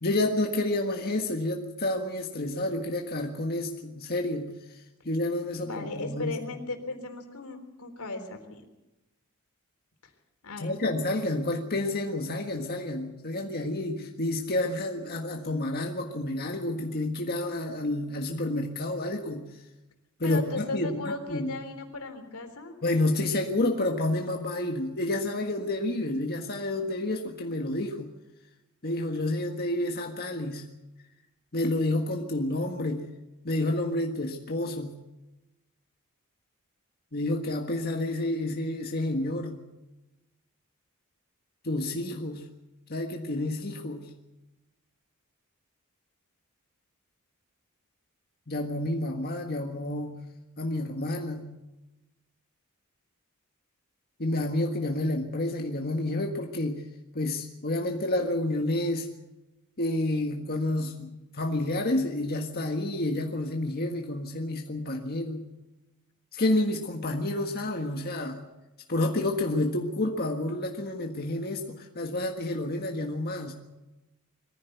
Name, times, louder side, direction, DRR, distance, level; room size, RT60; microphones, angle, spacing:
voice 1, 0.0-6.6 10.6-19.5 20.2-21.5 22.8-28.1 28.8-30.6 31.5-33.1 33.4-35.0 37.1-39.6 41.6-42.5 42.9-44.1 48.5-50.2 50.6-51.5 54.2-56.8 57.1-59.1 59.8-65.4 66.3-68.4 68.9-73.5, left 1 dB, 45° left, 2 dB, 1.6 m, -29 dB
voice 2, 5.6-8.6 10.4-10.7 20.2-22.7, left 2 dB, 85° left, 5 dB, 3.7 m, -36 dB
22.5 x 15.0 x 8.1 m, 1.0 s
head